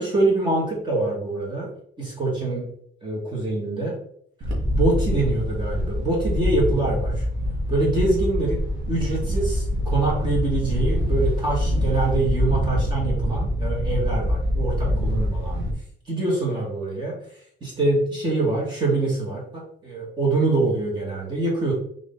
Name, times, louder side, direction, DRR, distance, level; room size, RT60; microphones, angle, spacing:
voice 1, 0.0-1.7 2.0-2.7 3.0-4.0 4.7-7.1 7.7-8.6 8.9-15.7 16.1-17.2 17.6-19.4 19.8-21.7, right 2 dB, 25° right, -3 dB, 2.3 m, -24 dB
Wind, 4.4-15.7, equal, 70° right, 1.8 m, -25 dB
6.5 x 3.8 x 4.0 m, 0.66 s
cardioid pair, 180°, 20 cm